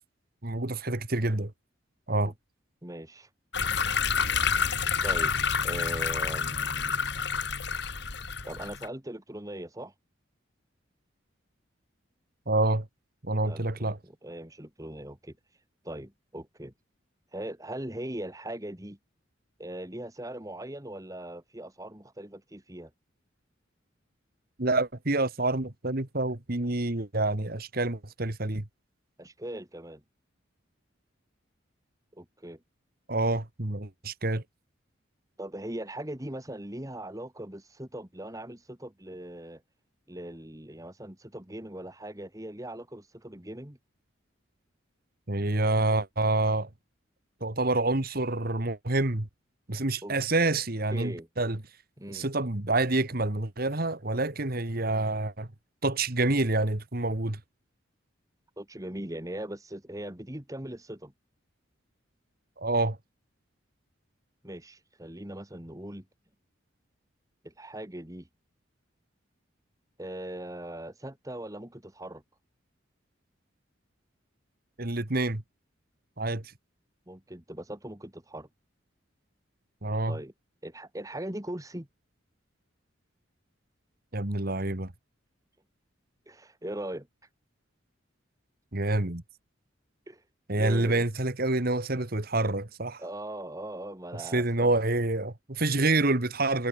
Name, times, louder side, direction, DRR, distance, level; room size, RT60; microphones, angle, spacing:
voice 1, 0.4-1.5 2.1-2.3 12.5-12.9 13.2-14.0 24.6-28.6 33.1-34.4 45.3-46.7 47.4-49.3 49.7-51.6 52.1-55.5 55.8-57.4 62.6-63.0 74.8-75.4 76.2-76.4 79.8-80.2 84.1-84.9 88.7-89.2 90.5-93.0 94.3-96.7, right 2 dB, 50° right, 1.9 m, -27 dB
voice 2, 2.8-3.3 5.0-5.3 5.6-7.0 8.4-9.9 13.4-15.4 15.8-16.7 17.3-19.0 19.6-22.9 29.2-30.0 32.1-32.6 35.4-39.6 40.1-43.8 50.0-50.2 50.9-51.3 52.0-52.3 58.6-61.1 64.4-66.1 67.4-68.3 70.0-72.2 77.1-78.5 80.1-80.3 80.6-81.9 86.3-87.1 90.1-90.2 90.6-91.1 93.0-94.7, right 1 dB, 15° right, 1.9 m, -40 dB
sound 1, 3.5-8.9, left 6 dB, 60° left, 2.6 m, -28 dB
head